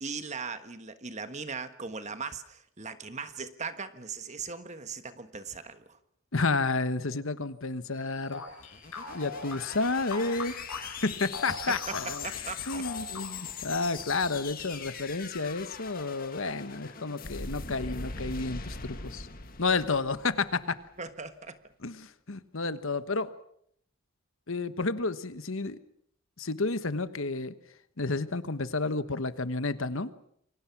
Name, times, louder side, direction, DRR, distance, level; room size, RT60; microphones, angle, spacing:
voice 1, 0.0-6.0 12.2-13.2 21.0-21.6 22.6-22.7, right 5 dB, 30° right, 10 dB, 1.4 m, -39 dB
voice 2, 6.3-8.4 9.1-12.3 12.7-19.3 19.6-20.8 21.8-23.3 24.5-25.8 26.4-27.5 28.0-30.1, left 3 dB, 60° left, 12 dB, 1.2 m, -31 dB
sound 1, 7.5-13.7, equal, 5° right, 5.0 m, -60 dB
sound 2, 8.3-13.6, left 4 dB, 80° left, 4.4 m, -41 dB
sound 3, 8.5-20.8, left 5 dB, 40° left, 1.9 m, -41 dB
28.5 x 23.5 x 6.0 m, 0.69 s
head